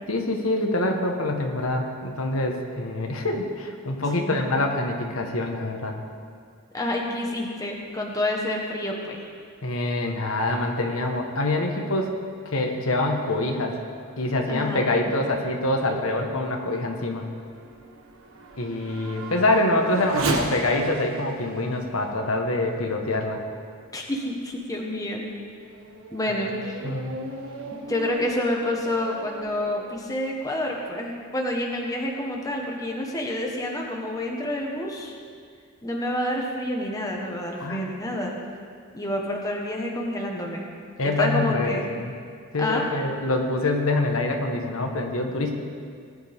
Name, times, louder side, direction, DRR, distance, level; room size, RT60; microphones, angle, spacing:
voice 1, 0.1-6.0 9.6-12.1 12.4-13.8 14.2-17.3 18.6-23.4 26.8-27.2 37.6-37.9 41.0-42.1 42.5-45.5, left 2 dB, 80° left, 2 dB, 1.4 m, -25 dB
voice 2, 6.7-9.3 14.5-14.9 23.9-25.2 26.1-26.8 27.9-35.2 35.8-38.3 38.9-40.6 41.0-41.9 42.6-42.9, left 1 dB, 15° left, -1 dB, 1.3 m, -28 dB
Race car auto racing / Accelerating revving vroom, 16.3-23.9 24.5-24.6 25.2-30.0, right 3 dB, 75° right, 1.4 m, -36 dB
19.0 x 10.5 x 3.6 m, 2.1 s
head